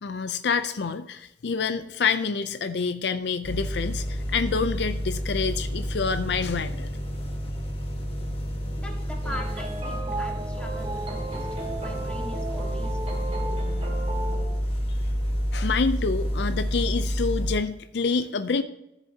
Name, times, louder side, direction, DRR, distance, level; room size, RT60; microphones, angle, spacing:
voice 1, 0.0-6.9 15.5-18.6, left 5 dB, 70° left, 11 dB, 0.5 m, -27 dB
sound 1, 3.4-17.6, equal, 35° left, 1.4 m, -29 dB
voice 2, 8.7-13.6, equal, 5° left, -1 dB, 1.7 m, -41 dB
sound 2, 9.2-14.5, right 2 dB, 35° right, 2.1 m, -35 dB
14.0 x 7.0 x 2.8 m, 0.85 s
head